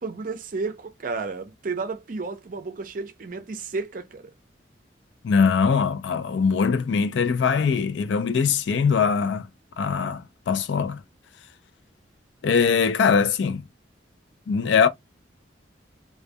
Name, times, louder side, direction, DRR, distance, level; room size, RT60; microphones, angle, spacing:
voice 1, 0.0-4.3, right 4 dB, 45° right, 0.5 m, -32 dB
voice 2, 5.2-9.5 9.8-11.0 12.4-13.6 14.5-14.9, left 5 dB, 75° left, 0.4 m, -22 dB
2.2 x 2.2 x 2.6 m
head